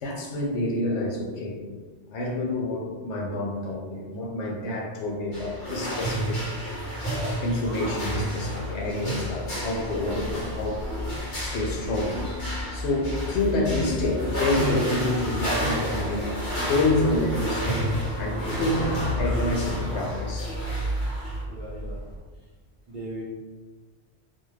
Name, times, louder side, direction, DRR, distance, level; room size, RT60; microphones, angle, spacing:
voice 1, 0.0-1.6 2.1-11.1 11.4-18.8 19.0-20.8, left 2 dB, 75° left, -1 dB, 0.9 m, -28 dB
sound 1, 5.3-21.4, equal, 50° left, 1.0 m, -31 dB
sound 2, 8.8-22.2, equal, 25° left, 1.1 m, -35 dB
voice 2, 10.2-10.8 18.3-18.6 21.4-22.0 22.4-22.5 22.9-23.2, right 1 dB, 45° right, -7 dB, 0.7 m, -39 dB
2.5 x 2.2 x 3.1 m, 1.4 s
omnidirectional pair, 1.2 m